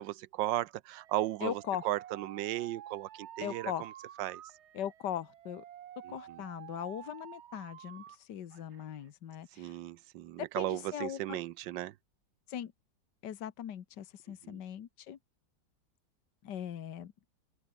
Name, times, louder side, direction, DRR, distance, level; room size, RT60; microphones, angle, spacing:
voice 1, 0.0-3.9 4.2-4.4 6.0-6.4 9.6-11.9 14.4-14.6, right 15 dB, 90° right, 1.4 m, -36 dB
Alarm, 0.9-8.2 8.5-9.1, right 11 dB, 65° right, 0.7 m, -50 dB
voice 2, 1.4-1.8 3.4-3.9 4.7-5.6 6.1-9.8 10.4-11.4 12.5-12.7 13.2-15.2 16.4-17.1, left 10 dB, 75° left, 1.8 m, -40 dB
open air
omnidirectional pair, 1.9 m